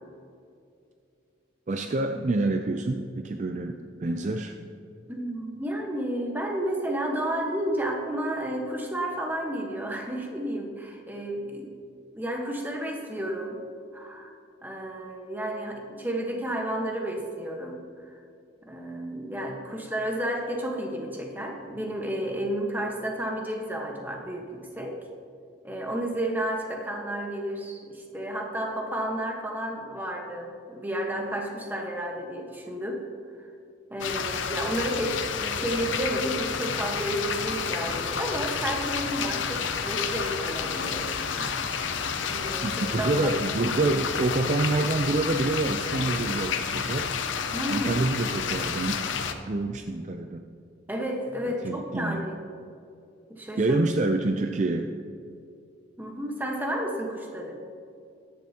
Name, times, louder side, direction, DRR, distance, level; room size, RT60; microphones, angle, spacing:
voice 1, 1.7-4.5 42.6-47.1 47.7-50.4 51.6-52.2 53.6-54.9, right 2 dB, 40° right, 6 dB, 0.4 m, -27 dB
voice 2, 5.1-11.8 12.1-13.6 13.9-14.3 14.6-18.2 18.6-25.0 25.6-33.0 33.4-33.5 33.9-41.7 42.3-43.3 47.5-47.9 50.9-52.4 53.3-53.8 56.0-57.6, right 1 dB, 10° right, 1 dB, 1.2 m, -32 dB
sound 1, 34.0-49.3, left 6 dB, 85° left, 0.7 m, -30 dB
13.5 x 10.5 x 2.9 m, 2.5 s
head